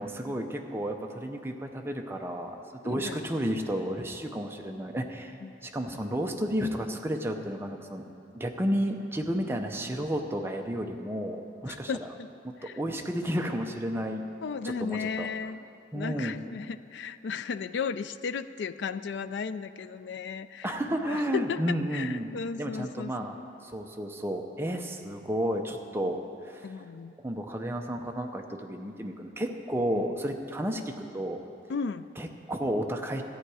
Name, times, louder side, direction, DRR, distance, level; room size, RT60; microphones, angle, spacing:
voice 1, 0.0-5.4 5.6-8.0 8.3-12.1 12.8-14.2 14.6-15.3 15.9-16.4 20.6-22.3 22.6-23.4 23.6-26.2 26.4-26.7 27.2-31.4 32.2-33.2, equal, 15° right, 3 dB, 0.6 m, -32 dB
voice 2, 2.8-3.2 5.4-5.5 11.7-12.3 12.6-12.7 14.4-15.6 15.9-20.8 21.1-21.6 21.9-23.1 26.6-27.1 29.9-30.1 31.7-32.1, left 5 dB, 65° left, 13 dB, 0.4 m, -35 dB
13.5 x 8.9 x 4.8 m, 2.8 s
head